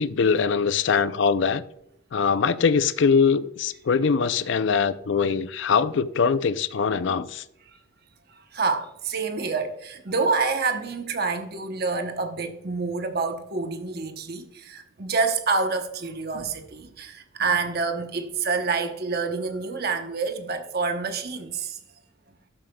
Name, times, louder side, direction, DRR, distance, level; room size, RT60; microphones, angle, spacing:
voice 1, 0.0-1.6 2.1-7.4, left 5 dB, 60° left, 0.4 m, -22 dB
voice 2, 8.3-21.8, right 4 dB, 50° right, 0.9 m, -27 dB
12.5 x 7.6 x 2.3 m
head